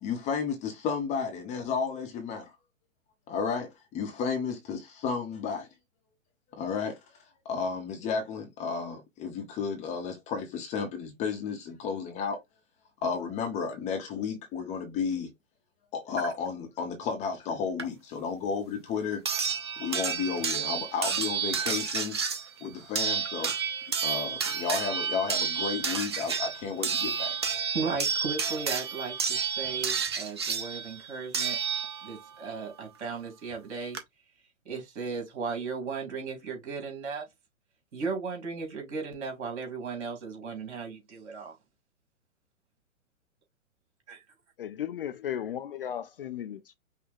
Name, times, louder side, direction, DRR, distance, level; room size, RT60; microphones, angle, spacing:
voice 1, 0.0-2.5 3.3-5.7 6.6-7.0 7.4-12.4 13.0-15.3 15.9-19.2 19.8-22.2 22.6-23.5 24.0-27.3, left 5 dB, 15° left, 0.8 m, -32 dB
sound 1, 17.8-17.9 19.3-32.3 33.5-33.6 33.9-34.0, right 6 dB, 20° right, 0.3 m, -30 dB
voice 2, 27.7-31.6 32.0-34.0 34.6-37.2 37.9-41.5 44.1-44.2, right 4 dB, 55° right, 2.8 m, -36 dB
voice 3, 44.6-46.7, left 10 dB, 45° left, 0.4 m, -35 dB
5.5 x 2.2 x 3.4 m
figure-of-eight pair, 120°, 40 cm